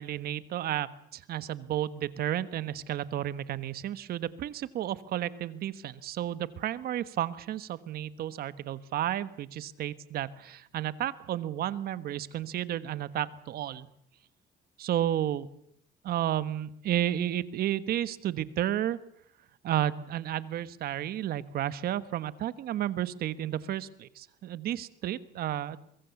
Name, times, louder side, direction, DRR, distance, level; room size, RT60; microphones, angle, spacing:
voice 1, 0.0-13.9 14.8-15.5 16.0-19.0 19.6-25.8, right 12 dB, 65° right, 14 dB, 1.3 m, -32 dB
23.5 x 22.5 x 7.2 m, 0.70 s
cardioid pair, 110°, 17 cm